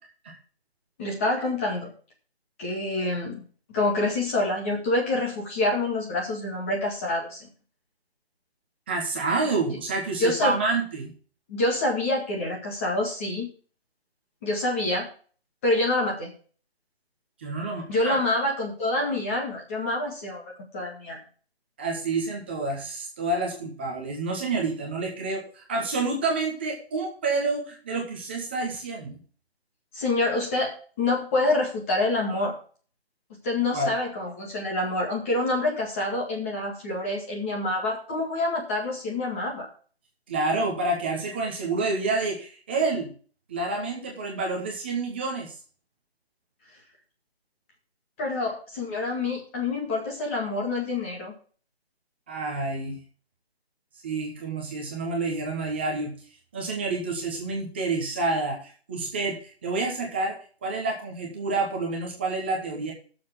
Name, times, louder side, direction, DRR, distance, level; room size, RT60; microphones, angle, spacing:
voice 1, 1.0-1.9 2.6-3.4 3.7-7.5 10.2-10.6 11.5-13.5 14.4-15.1 15.6-16.3 17.9-21.2 29.9-32.5 33.4-39.7 48.2-51.3, left 2 dB, 15° left, -1 dB, 1.9 m, -27 dB
voice 2, 8.9-11.1 17.4-18.2 21.8-29.2 33.7-33.9 40.3-43.1 43.5-45.5 52.3-53.0 54.0-56.1 56.5-59.4 59.6-62.9, right 3 dB, 10° right, 0 dB, 1.1 m, -28 dB
15.5 x 7.0 x 3.7 m, 0.41 s
hypercardioid pair, 170°, 31 cm